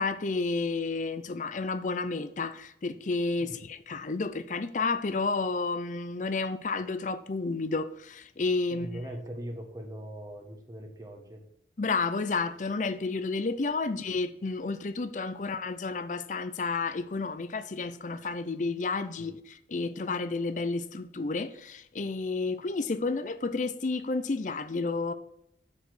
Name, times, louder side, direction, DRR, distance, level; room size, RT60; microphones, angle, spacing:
voice 1, 0.0-9.0 11.8-25.1, left 3 dB, 45° left, 0.5 m, -31 dB
voice 2, 8.7-11.4 19.2-19.3, equal, 20° right, 1.3 m, -41 dB
6.8 x 5.0 x 6.0 m
head